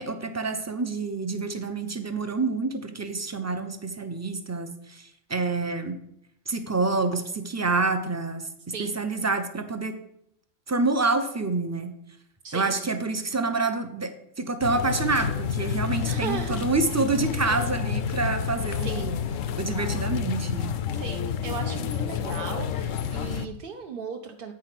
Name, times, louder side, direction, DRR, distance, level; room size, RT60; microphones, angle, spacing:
voice 1, 0.0-6.0 6.5-8.5 8.8-9.9 10.7-11.9 12.5-19.2 19.6-20.8, right 3 dB, 20° right, 7 dB, 0.5 m, -27 dB
sound 1, 14.6-23.5, left 7 dB, 85° left, 1.0 m, -29 dB
voice 2, 16.0-16.7 18.8-19.1 20.9-24.5, right 6 dB, 55° right, 3 dB, 0.7 m, -36 dB
8.9 x 5.0 x 5.8 m, 0.76 s
omnidirectional pair, 1.3 m